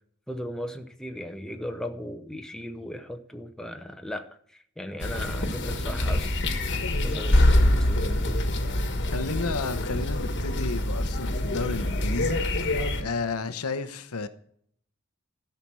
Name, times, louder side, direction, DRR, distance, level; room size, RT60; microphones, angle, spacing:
voice 1, 0.3-6.4 7.0-8.5, equal, 5° left, 0.8 m, -37 dB
sound 1, 5.0-13.0, left 1 dB, 55° left, 1.4 m, -25 dB
voice 2, 9.1-12.4 13.0-14.3, left 4 dB, 90° left, 0.9 m, -32 dB
13.0 x 5.9 x 6.1 m
head